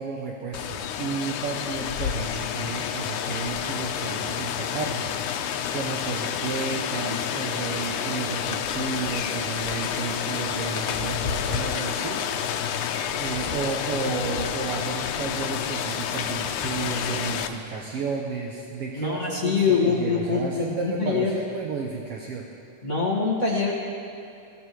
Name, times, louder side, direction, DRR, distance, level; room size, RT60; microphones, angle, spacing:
voice 1, 0.0-12.9 13.1-22.5, right 5 dB, 65° right, 0 dB, 1.6 m, -32 dB
Rain, 0.5-17.5, left 8 dB, 85° left, 2.2 m, -29 dB
voice 2, 18.9-21.3 22.8-23.7, left 5 dB, 35° left, -3 dB, 1.2 m, -24 dB
22.5 x 16.0 x 3.1 m, 2.5 s
omnidirectional pair, 3.4 m